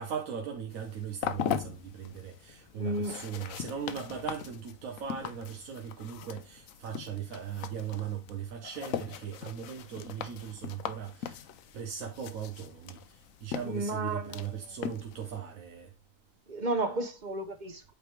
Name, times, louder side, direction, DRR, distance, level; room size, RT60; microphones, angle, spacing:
voice 1, 0.0-11.4 11.7-13.0 13.4-15.9, right 8 dB, 90° right, 1.3 m, -38 dB
sound 1, 0.7-15.4, left 9 dB, 80° left, 1.1 m, -40 dB
voice 2, 2.7-3.2 13.6-14.5 16.5-17.9, right 2 dB, 40° right, 0.8 m, -33 dB
8.6 x 3.4 x 4.6 m
omnidirectional pair, 1.4 m